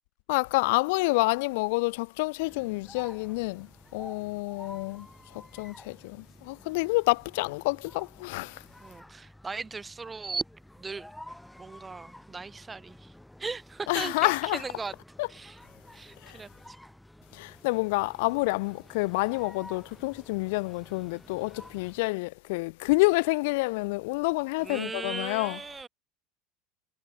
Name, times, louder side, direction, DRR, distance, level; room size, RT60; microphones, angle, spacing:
voice 1, 0.3-3.7 3.9-5.1 5.3-8.6 13.9-14.6 15.2-15.3 16.2-16.4 17.3-25.6, left 25 dB, 75° left, 0.7 m, -28 dB
sound 1, 2.4-22.1, left 1 dB, 5° left, 4.0 m, -51 dB
voice 2, 8.8-10.4 10.8-11.1 11.6-13.1 13.4-14.9 15.3-15.6 15.9-16.8 24.6-25.9, right 4 dB, 20° right, 2.9 m, -37 dB
supercardioid pair, 95°, 0 cm